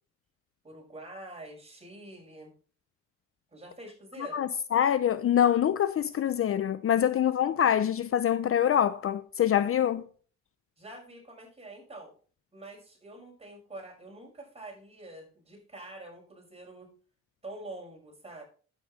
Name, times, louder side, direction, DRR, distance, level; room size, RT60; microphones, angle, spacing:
voice 1, 0.6-2.5 3.5-4.5 10.8-12.1 12.5-16.9 17.4-18.4, right 2 dB, 20° right, 6.0 m, -46 dB
voice 2, 4.3-10.0, left 9 dB, 45° left, 0.6 m, -25 dB
11.0 x 9.0 x 3.2 m
cardioid pair, 90°, 30 cm